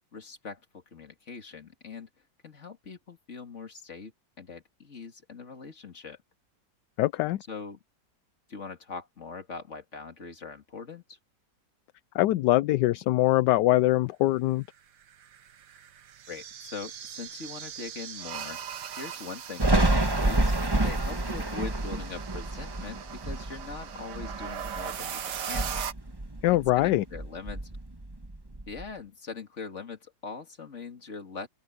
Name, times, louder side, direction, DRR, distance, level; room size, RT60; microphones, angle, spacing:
voice 1, 0.1-2.1 2.4-4.1 4.4-6.2 7.5-7.8 8.5-11.2 16.3-18.6 19.0-20.6 20.8-25.9 26.5-27.6 28.7-31.5, left 4 dB, 40° left, 2.6 m, -42 dB
voice 2, 7.0-7.4 12.1-14.6 26.4-27.0, left 16 dB, 75° left, 1.2 m, -23 dB
sound 1, 15.0-25.9, right 9 dB, 70° right, 1.6 m, -40 dB
Thunder, 19.6-25.0 25.4-26.9 27.1-28.8, right 2 dB, 15° right, 1.3 m, -28 dB
omnidirectional pair, 1.9 m